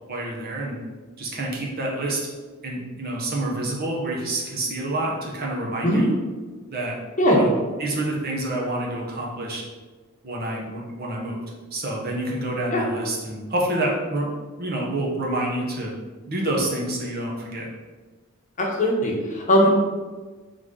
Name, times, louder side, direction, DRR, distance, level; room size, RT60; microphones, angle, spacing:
voice 1, 0.1-0.8 1.2-2.2 2.6-6.1 6.7-7.0 7.3-7.5 7.8-9.6 10.2-11.4 11.7-14.3 14.6-15.9 16.3-17.7 19.6-19.7, right 1 dB, 45° right, -2 dB, 0.9 m, -27 dB
voice 2, 18.6-19.7, equal, 35° left, -1 dB, 0.8 m, -19 dB
3.9 x 3.2 x 3.7 m, 1.3 s
head